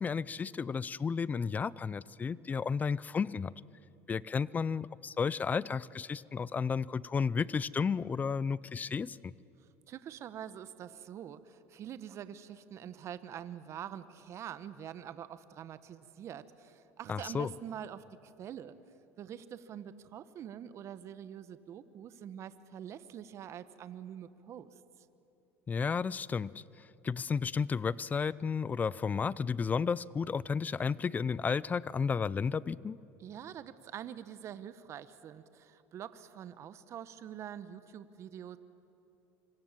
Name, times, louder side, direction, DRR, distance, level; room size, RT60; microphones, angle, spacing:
voice 1, 0.0-3.5 4.1-9.3 17.1-17.5 25.7-26.6 27.0-33.0, left 5 dB, 25° left, 22 dB, 0.5 m, -32 dB
voice 2, 9.9-18.7 19.2-24.7 33.2-38.6, right 9 dB, 45° right, 13 dB, 1.1 m, -45 dB
26.0 x 24.0 x 7.5 m, 2.8 s
supercardioid pair, 100°, 7 cm